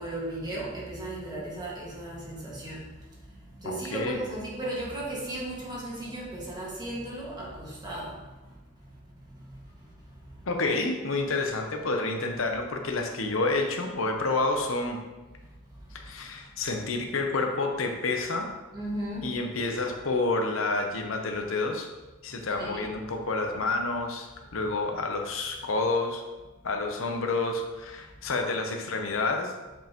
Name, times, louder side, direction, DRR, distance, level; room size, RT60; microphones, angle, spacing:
voice 1, 0.0-2.8 3.6-8.1 18.7-19.3 22.6-22.9, right 1 dB, 20° right, -5 dB, 1.8 m, -35 dB
voice 2, 3.6-4.2 10.5-15.0 15.9-18.5 19.2-21.9 22.2-26.2 26.6-29.5, left 3 dB, 70° left, 3 dB, 0.8 m, -29 dB
7.5 x 5.4 x 3.0 m, 1.1 s
head